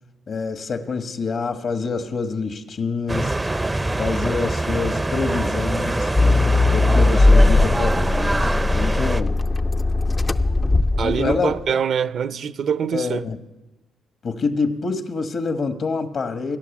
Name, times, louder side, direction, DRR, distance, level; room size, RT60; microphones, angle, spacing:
voice 1, 0.3-3.4 4.0-6.1 6.7-9.4 10.1-10.2 11.0-11.5 12.9-13.4 14.2-16.6, left 4 dB, 50° left, 1.4 m, -26 dB
sound 1, 3.1-9.2, right 2 dB, 15° right, 0.6 m, -24 dB
Accelerating revving vroom, 6.2-11.6, left 2 dB, 25° left, 0.6 m, -18 dB
voice 2, 11.0-13.2, right 7 dB, 60° right, 0.7 m, -24 dB
18.0 x 10.0 x 7.2 m
cardioid pair, 90°, 0 cm